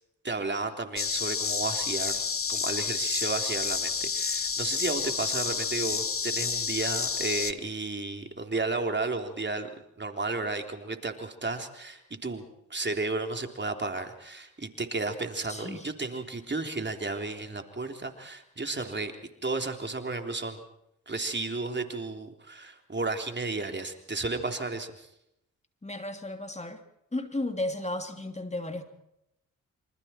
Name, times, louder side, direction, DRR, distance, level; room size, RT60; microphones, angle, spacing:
voice 1, 0.2-9.7 10.0-19.1 19.4-20.6 21.1-25.1, right 3 dB, 35° right, 5 dB, 3.6 m, -33 dB
sound 1, 1.0-7.5, left 5 dB, 40° left, 1.4 m, -30 dB
voice 2, 15.5-15.9 25.8-26.8 27.1-28.8, left 1 dB, 20° left, 6 dB, 3.0 m, -34 dB
27.5 x 26.0 x 4.5 m, 0.82 s
supercardioid pair, 45°, 33 cm